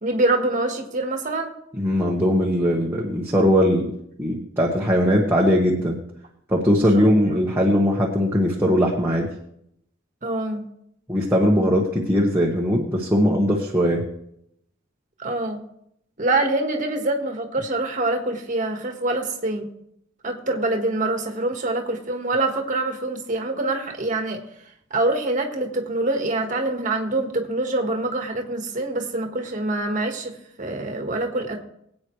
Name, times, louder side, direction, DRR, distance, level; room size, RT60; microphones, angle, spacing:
voice 1, 0.0-1.5 6.8-7.4 10.2-10.6 15.2-15.6 16.2-19.7 20.2-24.4 24.9-30.3 30.6-31.6, right 2 dB, 40° right, 3 dB, 1.6 m, -25 dB
voice 2, 1.8-3.9 4.2-6.0 6.5-9.3 11.1-14.0, equal, 10° right, -3 dB, 1.4 m, -20 dB
23.0 x 8.6 x 3.2 m, 0.75 s
head